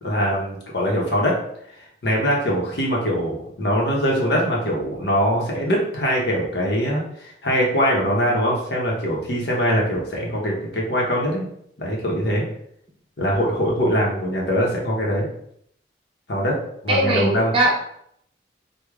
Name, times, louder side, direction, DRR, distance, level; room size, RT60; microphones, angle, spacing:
voice 1, 0.0-1.4 2.0-11.5 11.8-12.4 13.2-15.3 16.3-16.6 16.8-17.5, equal, 65° left, -2 dB, 0.9 m, -22 dB
voice 2, 16.9-17.7, right 1 dB, 30° right, -2 dB, 0.7 m, -20 dB
3.3 x 2.2 x 3.5 m, 0.70 s
head